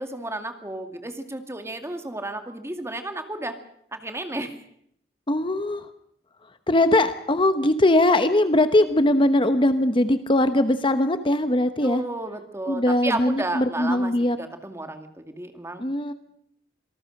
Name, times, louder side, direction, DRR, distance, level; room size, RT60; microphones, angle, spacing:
voice 1, 0.0-3.6 3.9-4.6 11.8-14.1 14.4-15.8, right 2 dB, 15° right, 7 dB, 2.3 m, -32 dB
voice 2, 5.3-5.9 6.7-12.0 12.7-14.4 15.8-16.1, left 1 dB, 30° left, 10 dB, 1.0 m, -21 dB
26.5 x 19.0 x 6.6 m, 0.68 s
head